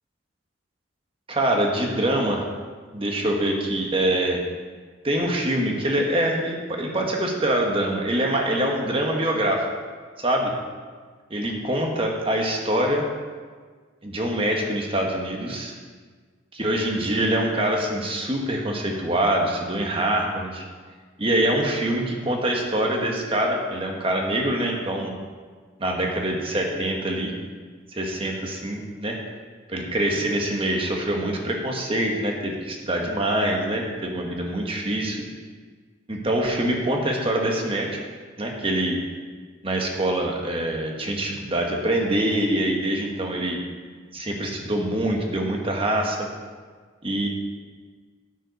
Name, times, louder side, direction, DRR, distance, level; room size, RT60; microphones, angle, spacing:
voice 1, 1.3-2.4 2.9-4.4 5.0-9.7 10.2-10.5 11.3-13.1 14.0-15.7 16.5-20.6 21.2-25.1 25.8-27.3 27.9-29.2 29.7-35.2 36.1-38.0 38.4-39.0 39.6-43.6 44.1-46.2 47.0-47.3, right 1 dB, 25° right, 1 dB, 1.3 m, -24 dB
9.7 x 8.8 x 5.2 m, 1.5 s
head